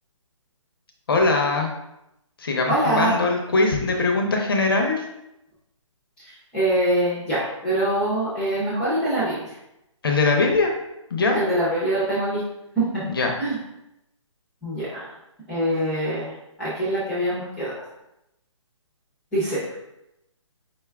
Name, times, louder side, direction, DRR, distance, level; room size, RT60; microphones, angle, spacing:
voice 1, 1.1-1.7 2.4-5.0 10.0-10.7 11.1-11.4 13.1-13.3, left 3 dB, 45° left, 2 dB, 0.6 m, -21 dB
voice 2, 2.7-3.2 6.3-9.4 11.3-12.4 12.7-13.0 13.4-13.6 14.6-15.1 15.5-16.3 16.6-17.7 19.3-19.6, right 1 dB, 5° left, -11 dB, 0.6 m, -24 dB
5.3 x 2.3 x 3.3 m, 0.88 s
hypercardioid pair, 165°, 17 cm